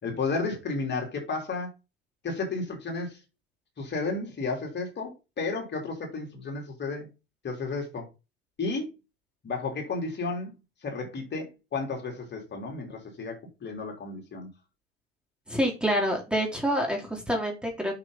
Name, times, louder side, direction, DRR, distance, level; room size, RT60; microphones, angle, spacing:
voice 1, 0.0-1.7 2.2-3.2 3.8-7.1 7.4-8.1 8.6-8.9 9.4-10.5 10.8-14.5, left 3 dB, 35° left, 3.6 m, -32 dB
voice 2, 15.5-18.0, equal, 5° right, 3.4 m, -27 dB
8.2 x 6.7 x 4.0 m
figure-of-eight pair, 65°, 32 cm